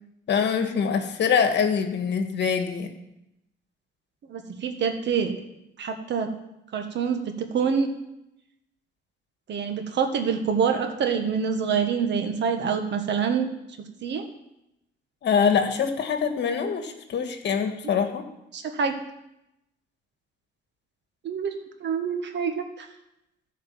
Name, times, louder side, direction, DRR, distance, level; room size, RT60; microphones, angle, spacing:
voice 1, 0.3-2.9 15.2-18.2, left 6 dB, 60° left, 6 dB, 1.5 m, -24 dB
voice 2, 4.3-5.3 5.8-6.3 6.7-7.9 9.5-13.5 14.0-14.3 18.5-19.0 21.2-21.5 21.8-22.9, right 6 dB, 65° right, 6 dB, 1.6 m, -26 dB
13.5 x 5.0 x 7.6 m, 0.87 s
cardioid pair, 90°, 20 cm